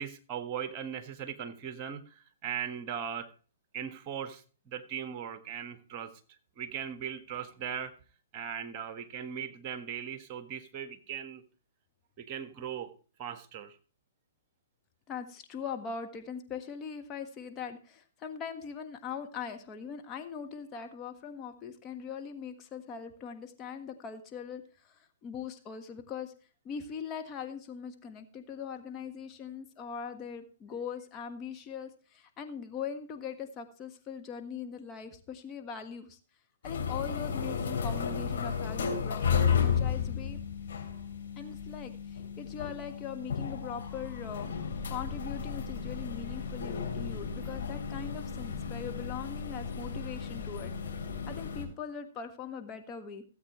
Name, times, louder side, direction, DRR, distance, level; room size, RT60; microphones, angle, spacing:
voice 1, 0.0-3.3 3.7-6.1 6.6-7.9 8.3-11.4 12.2-12.9 13.2-13.8, right 8 dB, 35° right, 9 dB, 1.6 m, -39 dB
voice 2, 15.1-26.3 26.6-36.2 36.6-40.4 41.4-44.5 44.9-50.7 51.3-53.2, left 6 dB, 25° left, 5 dB, 1.5 m, -41 dB
sound 1, 36.6-51.7, left 6 dB, 65° left, 3.2 m, -33 dB
17.0 x 8.2 x 3.1 m, 0.38 s
figure-of-eight pair, 120°, 0 cm